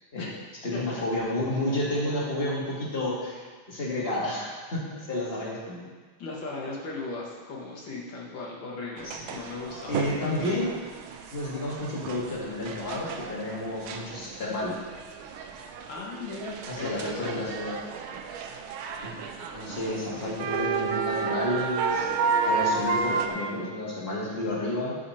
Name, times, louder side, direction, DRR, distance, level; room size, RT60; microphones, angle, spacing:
voice 1, 0.6-3.4 3.7-5.9 9.0-9.2 9.9-10.7 11.3-14.8 16.7-17.8 19.0-19.1 19.5-22.1 22.4-25.0, left 1 dB, 30° left, -6 dB, 2.1 m, -31 dB
voice 2, 6.2-9.9 15.9-17.5, left 3 dB, 60° left, -4 dB, 2.3 m, -37 dB
sound 1, 9.0-23.3, right 5 dB, 75° right, 1.5 m, -32 dB
13.5 x 4.9 x 4.3 m, 1.4 s
omnidirectional pair, 2.4 m